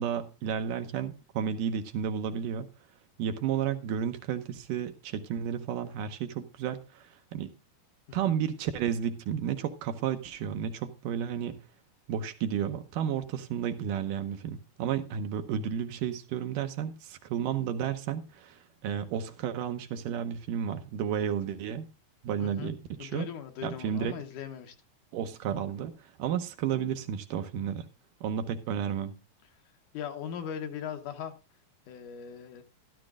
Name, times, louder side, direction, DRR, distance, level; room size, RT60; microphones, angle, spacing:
voice 1, 0.0-2.7 3.2-7.5 8.1-11.6 12.1-21.9 22.2-23.3 23.6-24.1 25.1-27.9 28.2-29.2, right 8 dB, 75° right, 2.3 m, -32 dB
voice 2, 22.4-22.7 23.0-24.8 29.9-31.3 31.9-32.6, left 8 dB, 70° left, 2.2 m, -39 dB
14.0 x 12.5 x 2.4 m
omnidirectional pair, 4.2 m